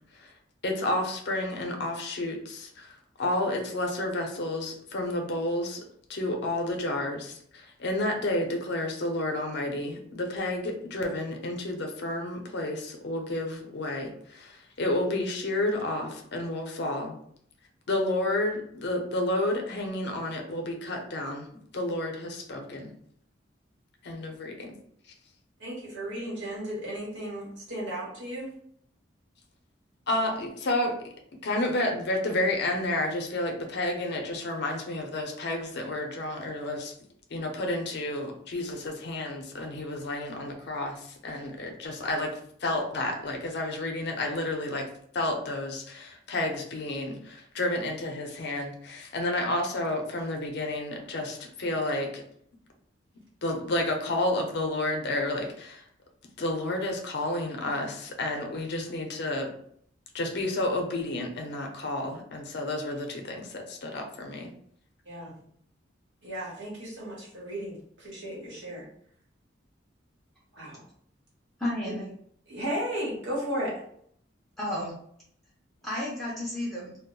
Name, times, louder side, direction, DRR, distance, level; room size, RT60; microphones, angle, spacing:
voice 1, 0.6-5.8 6.1-17.2 17.9-21.5 21.7-22.9 24.0-24.8 30.1-31.0 31.4-36.9 37.3-42.3 42.6-44.8 45.1-52.2 53.4-55.8 56.4-59.5 60.1-64.5, left 1 dB, 65° left, 2 dB, 0.6 m, -30 dB
voice 2, 25.6-28.5 65.0-65.3 66.2-68.9 70.5-70.8 71.9-72.0 72.5-73.7, equal, 70° right, -5 dB, 1.1 m, -35 dB
voice 3, 71.6-72.1 74.6-74.9 75.8-77.0, left 1 dB, ahead, -6 dB, 0.5 m, -32 dB
2.2 x 2.0 x 3.6 m, 0.65 s
head